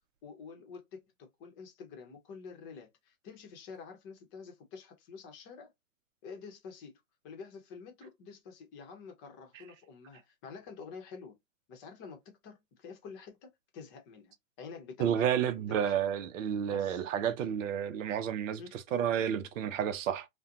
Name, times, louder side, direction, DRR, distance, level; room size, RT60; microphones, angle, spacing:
voice 1, 0.2-5.7 6.2-11.4 11.7-15.4 15.7-15.9 16.7-17.0 18.6-18.8, left 5 dB, 30° left, 0.8 m, -48 dB
voice 2, 15.0-20.3, right 9 dB, 65° right, 0.6 m, -31 dB
2.4 x 2.2 x 2.7 m
hypercardioid pair, 125°, 42 cm